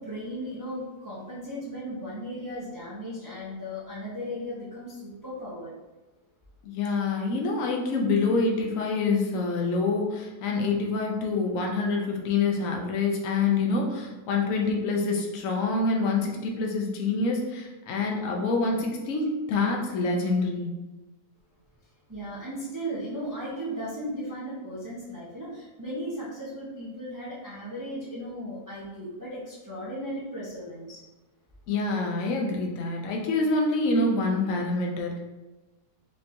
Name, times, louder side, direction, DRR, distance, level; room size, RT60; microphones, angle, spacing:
voice 1, 0.0-5.7 22.1-31.0, equal, 20° right, -8 dB, 0.5 m, -36 dB
voice 2, 6.6-20.8 31.7-35.2, left 3 dB, 60° left, 1 dB, 1.0 m, -26 dB
5.2 x 2.9 x 2.6 m, 1.1 s
omnidirectional pair, 1.7 m